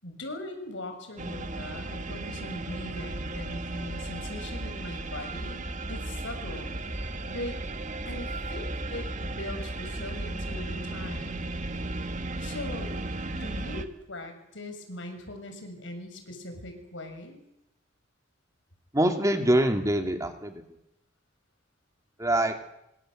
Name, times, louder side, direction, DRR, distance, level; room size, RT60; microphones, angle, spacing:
voice 1, 0.0-6.7 7.3-7.6 8.0-11.4 12.4-13.0 13.3-17.4, left 1 dB, 70° left, 6 dB, 6.9 m, -40 dB
sound 1, 1.2-13.8, right 2 dB, 40° right, 1.9 m, -35 dB
voice 2, 18.9-20.6 22.2-22.6, right 1 dB, 15° right, 5 dB, 2.8 m, -24 dB
26.0 x 25.5 x 7.9 m, 0.83 s
head